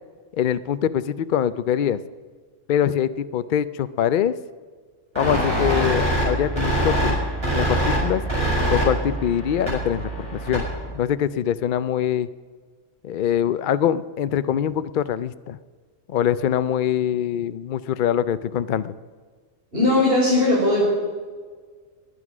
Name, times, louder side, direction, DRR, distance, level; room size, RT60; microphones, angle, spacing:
voice 1, 0.3-2.0 2.7-4.3 5.1-7.2 7.5-8.2 8.7-10.6 10.9-12.3 13.0-15.6 16.1-18.9, left 9 dB, 60° left, 14 dB, 0.5 m, -23 dB
sound 1, 5.1-10.9, right 1 dB, 20° right, 5.6 m, -24 dB
voice 2, 19.7-20.8, left 2 dB, 45° right, -9 dB, 5.5 m, -18 dB
21.0 x 9.6 x 6.1 m, 1.6 s
omnidirectional pair, 1.3 m